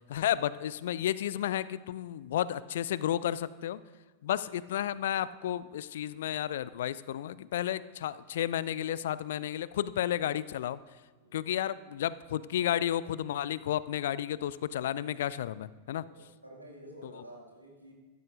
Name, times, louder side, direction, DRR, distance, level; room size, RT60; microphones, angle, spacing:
voice 1, 0.1-3.8 4.2-10.8 11.3-16.0 17.0-17.2, left 11 dB, 60° left, 19 dB, 0.3 m, -32 dB
voice 2, 16.0-17.9, right 1 dB, 85° right, -1 dB, 2.0 m, -50 dB
14.5 x 13.0 x 2.6 m, 1.3 s
figure-of-eight pair, 90°, 0 cm